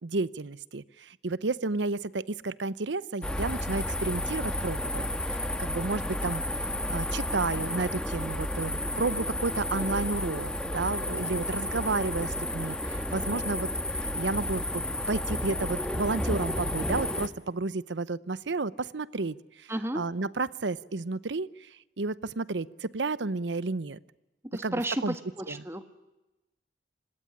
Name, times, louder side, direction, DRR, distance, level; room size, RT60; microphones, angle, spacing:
voice 1, 0.0-13.7 13.9-21.7 22.0-24.0 24.6-25.2 25.5-25.6, right 3 dB, 85° right, 18 dB, 0.8 m, -32 dB
sound 1, 3.2-17.3, left 1 dB, 5° left, 1.5 m, -32 dB
voice 2, 19.7-20.0 24.5-25.9, right 1 dB, 15° right, 9 dB, 1.5 m, -33 dB
26.0 x 20.0 x 9.9 m, 1.0 s
head